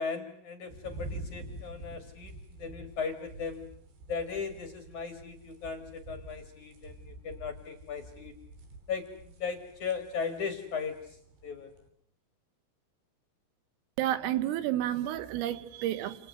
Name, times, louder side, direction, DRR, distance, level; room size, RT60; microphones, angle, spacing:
voice 1, 0.0-3.6 4.1-8.4 8.9-11.2 11.4-11.7, left 5 dB, 55° left, 2.3 m, -37 dB
sound 1, 0.7-11.9, right 2 dB, 60° right, 5.4 m, -47 dB
voice 2, 14.0-16.3, right 12 dB, 85° right, 4.0 m, -31 dB
28.5 x 28.5 x 6.2 m
omnidirectional pair, 5.8 m